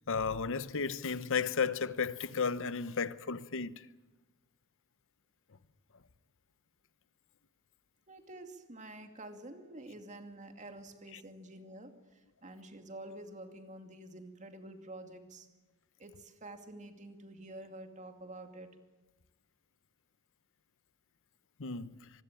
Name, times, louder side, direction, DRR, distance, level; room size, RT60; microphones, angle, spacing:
voice 1, 0.1-3.7 21.6-21.9, left 5 dB, 60° left, 0.9 m, -33 dB
voice 2, 8.1-15.5 16.0-18.8, right 1 dB, 35° right, 2.4 m, -49 dB
25.5 x 21.0 x 9.1 m
head